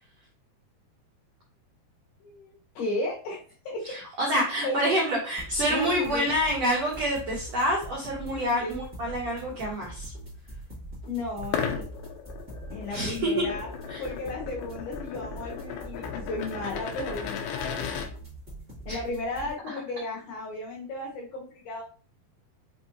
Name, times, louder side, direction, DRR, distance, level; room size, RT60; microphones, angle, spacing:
voice 1, 2.2-3.4 3.7-5.0 5.7-6.3 8.3-8.8 11.1-11.8 12.7-13.7 14.0-18.1 18.9-21.8, left 2 dB, 70° left, -3 dB, 2.0 m, -34 dB
voice 2, 3.8-10.1 12.9-13.3 13.9-14.0 18.9-19.0 19.7-19.8, equal, 90° right, -3 dB, 1.4 m, -27 dB
sound 1, 5.4-19.5, right 1 dB, 65° right, 0.4 m, -43 dB
sound 2, 11.4-18.1, left 8 dB, 90° left, 1.8 m, -36 dB
5.7 x 2.6 x 2.8 m, 0.41 s
omnidirectional pair, 4.4 m